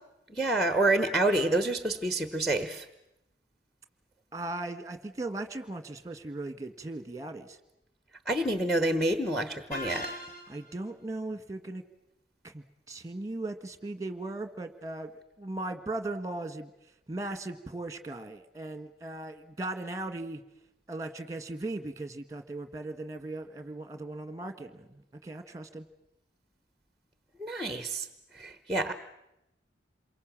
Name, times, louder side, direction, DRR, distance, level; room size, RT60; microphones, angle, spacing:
voice 1, 0.4-2.8 8.3-10.1 27.4-28.0 28.4-28.9, right 2 dB, ahead, 10 dB, 1.1 m, -27 dB
voice 2, 4.3-7.6 10.5-11.8 12.4-15.1 15.4-16.7 17.1-20.4 20.9-25.8, right 2 dB, 20° right, 9 dB, 1.6 m, -38 dB
sound 1, 9.7-10.7, left 1 dB, 45° left, 7.2 m, -39 dB
27.5 x 23.0 x 7.5 m, 0.86 s
head